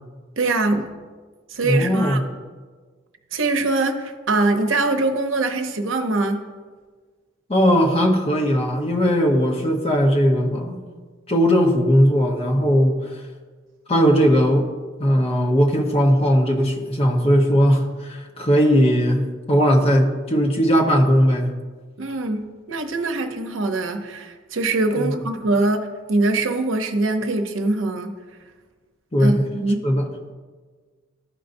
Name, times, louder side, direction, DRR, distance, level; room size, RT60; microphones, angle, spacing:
voice 1, 0.4-0.9 1.5-2.2 3.3-6.5 22.0-28.1 29.2-29.9, right 2 dB, 75° right, 6 dB, 0.7 m, -23 dB
voice 2, 1.6-2.2 7.5-10.8 11.3-13.1 13.9-14.7 15.0-21.5 25.0-25.2 29.1-29.4 29.8-30.1, equal, 30° left, 1 dB, 0.9 m, -18 dB
14.0 x 5.4 x 2.6 m, 1.5 s
head